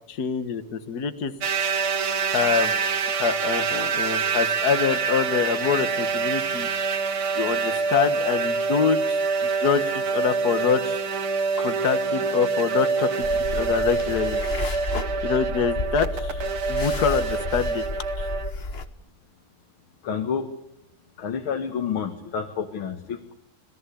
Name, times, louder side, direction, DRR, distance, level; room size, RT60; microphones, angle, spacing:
voice 1, 0.1-1.3 2.2-2.8 3.1-6.7 7.4-9.2 9.6-11.0 11.6-14.4 15.2-16.4 16.7-17.8 18.2-18.3, left 7 dB, 50° left, 10 dB, 1.9 m, -25 dB
sound 1, 1.4-18.5, right 5 dB, 80° right, 2.5 m, -26 dB
sound 2, 13.2-18.8, left 3 dB, 35° left, 1.2 m, -32 dB
voice 2, 20.0-20.5 21.2-23.3, left 7 dB, 75° left, 5 dB, 2.4 m, -29 dB
26.0 x 19.0 x 8.4 m, 0.80 s
omnidirectional pair, 2.3 m